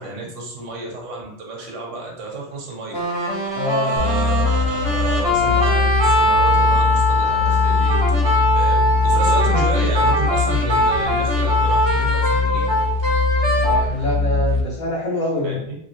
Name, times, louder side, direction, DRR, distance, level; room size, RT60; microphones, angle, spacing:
voice 1, 0.0-3.3 3.8-8.0 8.5-12.6 15.4-15.8, right 3 dB, 80° right, -1 dB, 1.2 m, -31 dB
sound 1, 2.9-13.9, equal, 30° right, 0.6 m, -21 dB
voice 2, 3.5-4.0 13.6-15.6, left 1 dB, 50° left, -5 dB, 0.7 m, -24 dB
sound 2, 4.0-14.6, left 3 dB, 75° left, 0.9 m, -21 dB
3.0 x 2.7 x 3.0 m, 0.75 s
omnidirectional pair, 1.2 m